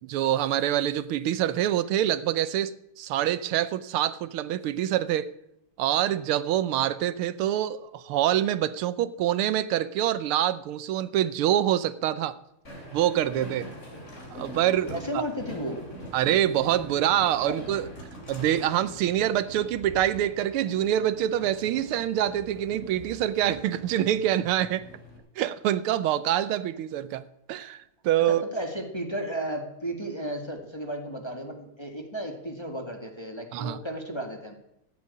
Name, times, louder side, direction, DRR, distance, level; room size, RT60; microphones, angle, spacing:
voice 1, 0.0-5.3 5.8-12.4 12.9-13.7 14.3-15.2 16.1-17.9 18.3-24.9 25.4-27.2 27.5-28.4 33.5-33.8, right 12 dB, 85° right, 15 dB, 1.6 m, -26 dB
Train, 12.6-25.2, equal, 35° left, 3.4 m, -43 dB
voice 2, 14.9-15.8 17.2-17.6 28.3-34.5, right 1 dB, 15° left, 3 dB, 1.8 m, -34 dB
15.0 x 8.3 x 8.4 m, 0.79 s
omnidirectional pair, 2.4 m